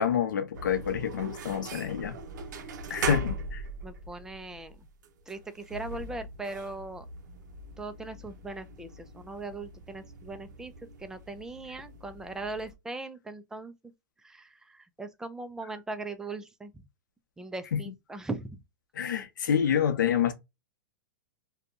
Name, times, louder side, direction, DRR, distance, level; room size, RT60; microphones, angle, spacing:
voice 1, 0.0-2.2 2.9-3.6 17.7-17.8 19.0-20.3, left 8 dB, 80° left, 0.7 m, -27 dB
sound 1, 0.5-12.7, right 2 dB, 70° right, 0.6 m, -40 dB
voice 2, 3.8-4.9 5.3-7.1 7.8-10.7 11.0-13.7 14.2-16.8 17.4-18.6, right 3 dB, 5° right, 0.3 m, -39 dB
2.7 x 2.2 x 2.4 m
hypercardioid pair, 130°, 10 cm